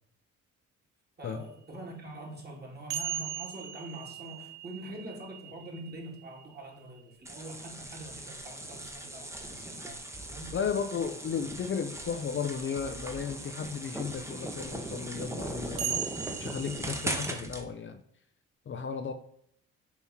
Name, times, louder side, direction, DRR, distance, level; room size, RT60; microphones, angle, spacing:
voice 1, 1.2-10.0 10.2-10.5, right 1 dB, 35° right, 2.1 m, -44 dB
sound 1, 2.9-7.2 9.0-9.1 12.1-12.2 15.8-17.4, right 9 dB, 65° right, 0.6 m, -38 dB
sound 2, 7.2-17.6, right 1 dB, 10° right, 0.9 m, -39 dB
voice 2, 10.5-16.1 16.4-18.0 18.7-19.1, left 6 dB, 40° left, 0.5 m, -34 dB
5.7 x 3.0 x 5.5 m
cardioid pair, 90°, 30 cm